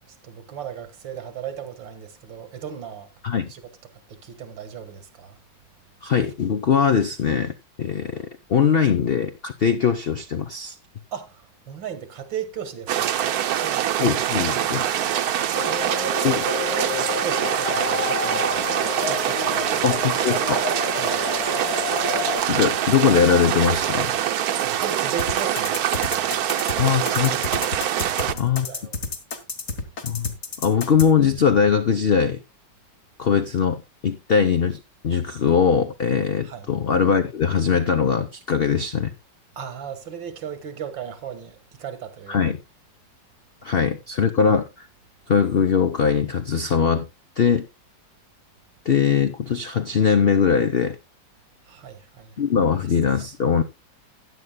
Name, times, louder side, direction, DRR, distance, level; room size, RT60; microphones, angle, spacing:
voice 1, 0.1-3.1 3.5-3.6 4.1-5.4 11.1-13.9 15.6-18.7 19.0-19.9 20.9-21.2 24.6-26.5 26.8-27.3 28.0-29.0 36.4-36.7 39.6-42.4 51.7-52.3 52.7-52.8, right 8 dB, 85° right, 2.1 m, -36 dB
voice 2, 6.0-8.2 8.5-10.7 14.0-14.8 16.2-16.4 19.8-20.6 22.5-24.1 26.8-27.4 28.4-28.7 30.0-30.3 30.6-32.4 33.2-39.1 42.3-42.6 43.6-44.9 45.3-47.1 47.4-47.7 48.9-51.0 52.4-53.6, left 7 dB, 90° left, 0.5 m, -21 dB
sound 1, 12.9-28.3, right 11 dB, 65° right, 1.1 m, -24 dB
sound 2, 15.5-22.4, left 9 dB, 65° left, 1.1 m, -30 dB
sound 3, 25.2-31.1, left 4 dB, 45° left, 1.7 m, -30 dB
15.5 x 9.7 x 2.2 m
omnidirectional pair, 2.0 m